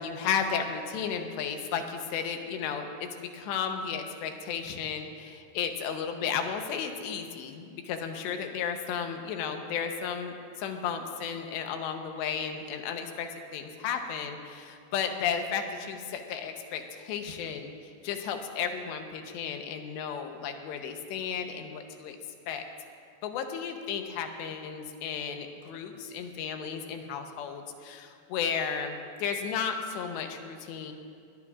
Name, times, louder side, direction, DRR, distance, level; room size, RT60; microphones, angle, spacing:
voice 1, 0.0-22.2 22.5-22.6 23.2-30.9, left 7 dB, 80° left, 5 dB, 3.1 m, -34 dB
20.5 x 20.5 x 2.4 m, 2.4 s
omnidirectional pair, 5.0 m